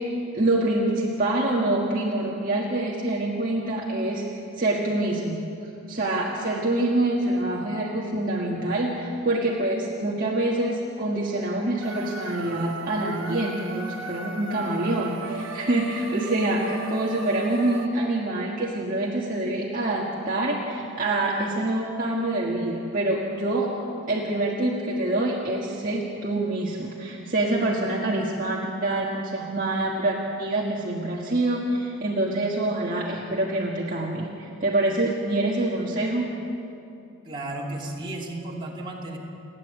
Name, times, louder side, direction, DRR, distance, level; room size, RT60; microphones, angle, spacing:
voice 1, 0.0-4.2 4.5-5.4 5.9-23.7 24.1-36.3, right 2 dB, 40° right, -3 dB, 1.7 m, -26 dB
sound 1, 11.8-17.9, right 3 dB, 60° right, 1.3 m, -36 dB
voice 2, 37.2-39.2, right 2 dB, 25° right, -3 dB, 2.9 m, -33 dB
29.5 x 11.0 x 8.3 m, 2.8 s
head